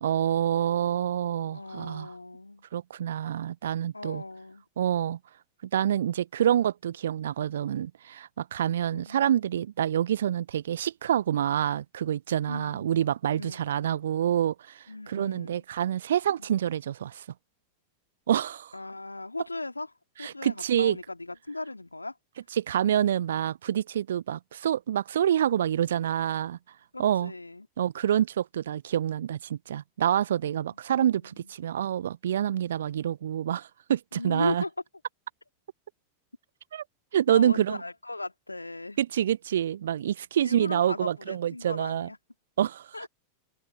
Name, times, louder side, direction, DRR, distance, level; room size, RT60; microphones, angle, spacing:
voice 1, 0.0-2.1 2.7-4.2 4.8-5.2 5.7-17.2 18.3-18.7 20.2-21.0 22.6-26.6 27.0-27.3 27.8-34.6 36.7-36.8 37.1-37.8 39.0-42.1 42.6-42.9, right 10 dB, 65° right, 1.0 m, -27 dB
voice 2, 1.5-2.7 3.9-4.6 8.9-9.2 12.4-12.9 13.3-13.8 14.9-15.6 16.4-16.5 18.7-19.9 20.2-22.2 26.9-27.7 31.2-31.4 34.1-34.7 37.3-39.0 40.4-42.2 42.9-43.1, left 2 dB, 85° left, 2.4 m, -37 dB
figure-of-eight pair, 90°, 0 cm